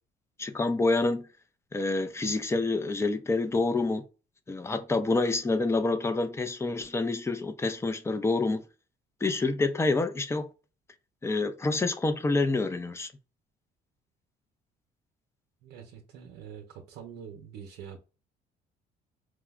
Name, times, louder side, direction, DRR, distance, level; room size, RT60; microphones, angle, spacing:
voice 1, 0.4-1.3 1.7-4.0 4.5-8.6 9.2-10.5 11.2-13.1, left 3 dB, 15° left, 0.4 m, -27 dB
voice 2, 15.6-18.0, right 7 dB, 85° right, 0.6 m, -45 dB
4.7 x 2.0 x 2.3 m
cardioid pair, 110°, 17 cm